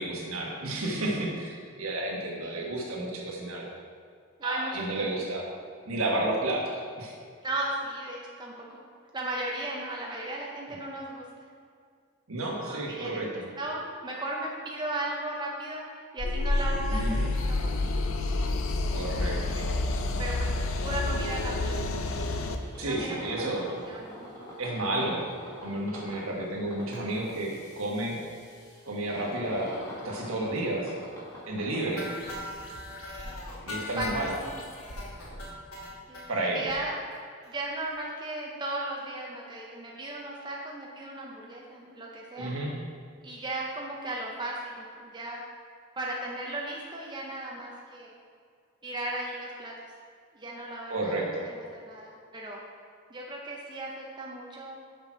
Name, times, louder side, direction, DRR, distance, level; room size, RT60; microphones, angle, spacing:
voice 1, 0.0-3.7 4.4-5.4 5.8-7.1 12.3-13.5 16.9-17.3 18.9-19.7 22.8-23.7 24.6-25.3 25.6-28.2 28.8-29.7 30.0-30.9 31.5-32.1 33.7-34.3 36.3-36.6 42.4-42.7 50.9-51.5, right 1 dB, 70° right, -2 dB, 1.5 m, -31 dB
voice 2, 2.4-2.7 4.4-5.1 7.4-8.9 9.1-11.5 12.6-18.0 19.5-19.7 20.2-20.5 20.8-21.9 22.3-22.4 22.8-23.5 23.9-24.3 26.3-26.5 32.0-32.3 33.3-33.4 34.0-34.4 36.1-36.9 37.4-42.5 43.2-45.4 46.0-48.1 48.8-49.7 50.3-52.6 53.1-54.8, right 1 dB, 20° right, -3 dB, 0.7 m, -36 dB
sound 1, 16.2-22.6, left 2 dB, 65° left, 0.5 m, -28 dB
sound 2, 22.2-32.9, equal, 15° left, 1.5 m, -45 dB
sound 3, 32.0-36.3 36.7-36.8 37.1-37.2 37.4-37.6 37.9-38.0, left 1 dB, 80° left, 1.3 m, -39 dB
6.8 x 5.9 x 4.6 m, 2.2 s
head